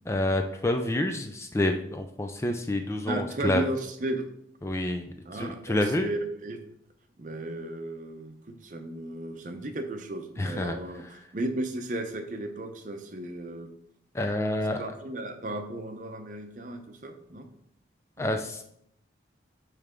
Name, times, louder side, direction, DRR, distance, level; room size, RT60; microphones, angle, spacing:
voice 1, 0.1-3.6 4.6-5.1 5.3-6.1 10.4-10.8 14.1-14.8 18.2-18.6, left 1 dB, 15° left, 5 dB, 0.3 m, -28 dB
voice 2, 3.1-4.3 5.3-6.6 7.2-13.7 14.8-17.5 18.2-18.3, right 1 dB, 45° right, 6 dB, 0.6 m, -35 dB
8.6 x 3.3 x 3.6 m, 0.73 s
head